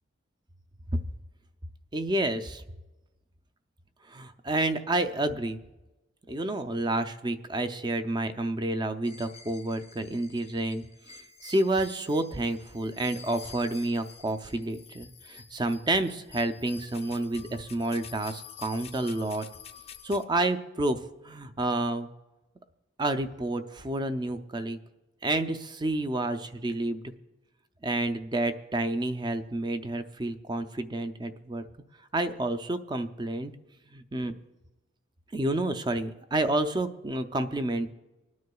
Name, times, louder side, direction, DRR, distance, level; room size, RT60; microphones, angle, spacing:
voice 1, 1.9-2.6 4.1-5.6 6.3-10.8 11.4-19.5 20.0-21.0 21.2-22.1 23.0-24.8 25.2-27.0 27.8-31.6 32.1-33.5 33.9-34.3 35.3-37.9, right 2 dB, 20° right, 9 dB, 0.4 m, -29 dB
sound 1, 9.0-20.2, left 7 dB, 30° left, 0.5 m, -49 dB
25.5 x 9.5 x 2.3 m, 1.1 s
head